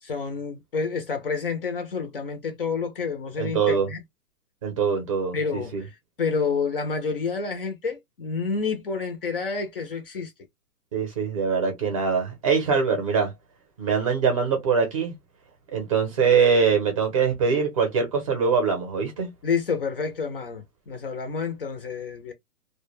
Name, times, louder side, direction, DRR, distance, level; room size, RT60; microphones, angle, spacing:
voice 1, 0.0-4.0 5.3-10.3 19.4-22.3, left 5 dB, 40° left, 0.5 m, -29 dB
voice 2, 3.4-3.9 4.6-5.8 10.9-13.3 13.8-15.1 15.7-19.3, right 5 dB, 25° right, 0.6 m, -23 dB
2.2 x 2.1 x 3.0 m
hypercardioid pair, 155°, 44 cm